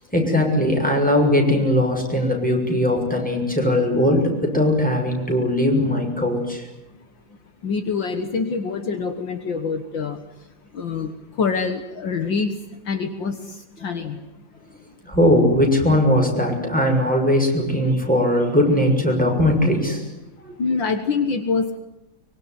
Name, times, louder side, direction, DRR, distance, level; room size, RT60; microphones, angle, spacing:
voice 1, 0.1-6.7 15.0-20.1 20.4-20.5, left 1 dB, 5° left, 1 dB, 6.6 m, -19 dB
voice 2, 7.6-10.2 10.7-11.1 11.4-12.6 12.9-13.4 13.8-14.2 20.6-21.8, left 5 dB, 65° left, 7 dB, 2.1 m, -25 dB
24.5 x 23.5 x 9.5 m, 0.93 s
omnidirectional pair, 2.3 m